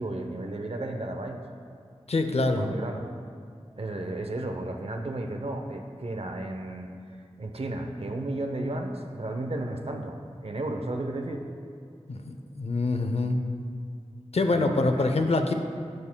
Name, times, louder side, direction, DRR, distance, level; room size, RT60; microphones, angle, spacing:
voice 1, 0.0-1.4 2.6-3.1 3.8-6.9 7.4-11.4 14.5-15.0, right 2 dB, 65° right, 4 dB, 0.7 m, -33 dB
voice 2, 2.1-2.7 12.1-13.4 14.3-15.5, left 2 dB, 70° left, 6 dB, 0.6 m, -25 dB
10.5 x 7.3 x 2.2 m, 2.2 s
wide cardioid pair, 40°, 11 cm